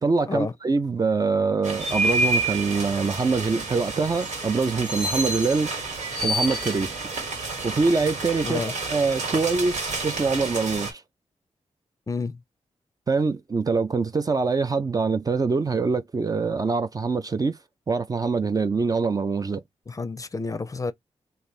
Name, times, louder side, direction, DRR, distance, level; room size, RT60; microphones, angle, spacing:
voice 1, 0.0-6.9 7.6-11.0 13.1-17.6 17.9-19.6, right 4 dB, 30° right, 0.5 m, -24 dB
sound 1, 1.6-10.9, right 2 dB, 85° right, 1.6 m, -29 dB
voice 2, 8.4-8.7 12.1-12.4 19.9-20.9, left 4 dB, 30° left, 0.5 m, -30 dB
3.3 x 2.5 x 4.1 m
wide cardioid pair, 95°, 12 cm